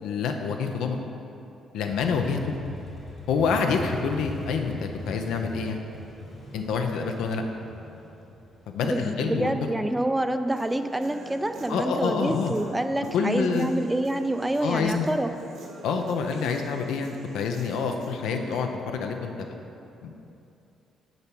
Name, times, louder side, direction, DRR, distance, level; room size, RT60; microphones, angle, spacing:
voice 1, 0.0-1.0 1.7-2.4 3.3-5.8 6.5-7.4 8.7-9.5 11.7-12.5 13.1-13.7 14.6-15.1 15.8-19.6 20.0-20.2, left 5 dB, 85° left, 4 dB, 0.6 m, -27 dB
Motorcycle, 1.9-9.6, left 1 dB, 45° left, 1.6 m, -40 dB
voice 2, 8.8-15.3, right 1 dB, 10° right, 9 dB, 0.3 m, -27 dB
Human voice / Guitar, 10.6-18.6, right 3 dB, 75° right, 1.1 m, -44 dB
6.7 x 4.6 x 5.9 m, 2.8 s
cardioid pair, 90°, 0 cm